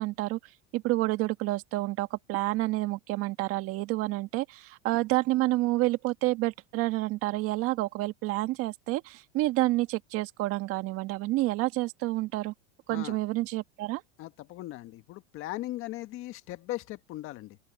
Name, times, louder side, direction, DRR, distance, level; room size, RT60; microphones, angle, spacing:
voice 1, 0.0-12.5 12.9-14.0, right 19 dB, 45° right, 1.6 m, -29 dB
voice 2, 14.2-17.6, left 16 dB, 40° left, 1.6 m, -38 dB
open air
supercardioid pair, 135°, 32 cm